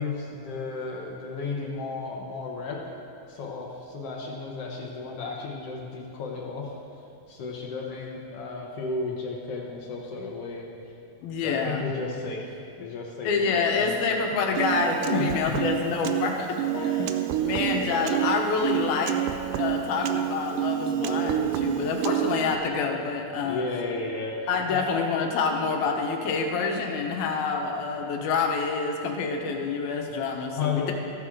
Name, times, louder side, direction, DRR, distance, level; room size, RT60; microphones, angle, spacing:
voice 1, 0.0-2.8 3.3-6.7 7.3-10.7 11.4-14.0 15.1-15.7 16.7-17.2 23.4-24.9 30.5-30.9, left 4 dB, 70° left, -1 dB, 1.4 m, -33 dB
voice 2, 11.2-11.8 13.2-16.6 17.4-19.2 19.5-23.6 24.5-30.9, left 4 dB, 85° left, 2 dB, 3.0 m, -27 dB
Piano, 14.6-22.6, right 12 dB, 80° right, 1.9 m, -28 dB
14.5 x 14.0 x 3.7 m, 2.6 s
omnidirectional pair, 4.2 m